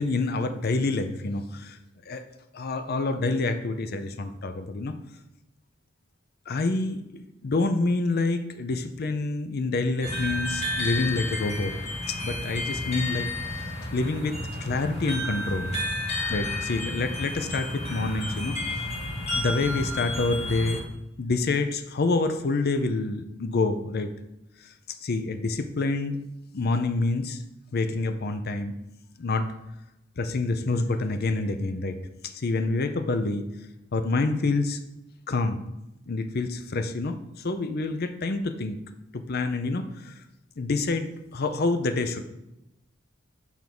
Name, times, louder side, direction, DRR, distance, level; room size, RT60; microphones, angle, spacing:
voice 1, 0.0-1.8 2.1-2.2 2.5-5.0 6.5-11.8 12.1-13.3 13.5-15.7 16.3-18.9 19.4-20.8 21.2-24.1 25.0-26.2 26.5-27.4 27.7-28.7 29.2-29.5 30.2-32.0 32.3-33.4 33.9-34.8 35.3-35.7 36.1-37.2 37.4-38.8 39.1-40.1 40.6-42.2, left 3 dB, 50° left, 8 dB, 0.6 m, -27 dB
sound 1, 10.0-20.8, left 1 dB, 35° left, 2.2 m, -31 dB
7.1 x 3.6 x 6.0 m, 0.89 s
head